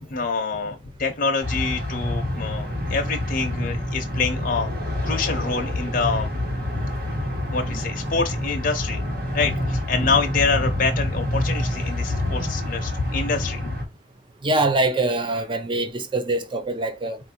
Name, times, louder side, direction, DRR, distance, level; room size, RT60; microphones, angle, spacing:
voice 1, 0.0-4.7 5.0-6.3 6.8-6.9 7.5-9.0 9.3-13.8, left 4 dB, 50° left, 0.7 m, -26 dB
sound 1, 1.4-13.8, left 1 dB, 60° right, 1.2 m, -27 dB
voice 2, 14.4-17.2, right 2 dB, 30° right, 0.6 m, -23 dB
4.1 x 2.5 x 2.7 m
head